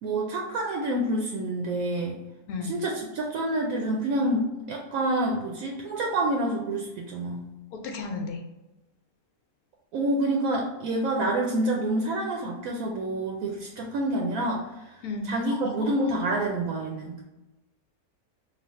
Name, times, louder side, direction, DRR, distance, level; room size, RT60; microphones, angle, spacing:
voice 1, 0.0-2.2 2.6-7.5 9.9-15.0 15.2-17.2, right 1 dB, 75° right, 0 dB, 1.0 m, -28 dB
voice 2, 2.5-2.8 7.7-8.4 15.0-15.6, left 3 dB, 80° left, 4 dB, 1.1 m, -33 dB
3.3 x 2.4 x 4.2 m, 1.0 s
omnidirectional pair, 1.6 m